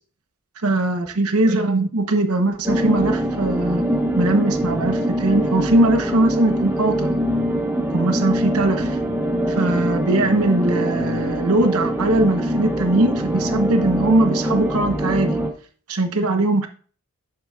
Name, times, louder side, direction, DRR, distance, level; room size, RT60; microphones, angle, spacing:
voice 1, 0.6-3.8 4.2-7.1 7.9-9.0 9.5-15.4 15.9-16.7, right 2 dB, 85° right, 1.0 m, -20 dB
sound 1, 2.6-15.5, right 1 dB, 10° right, 1.0 m, -23 dB
9.1 x 6.9 x 2.4 m
head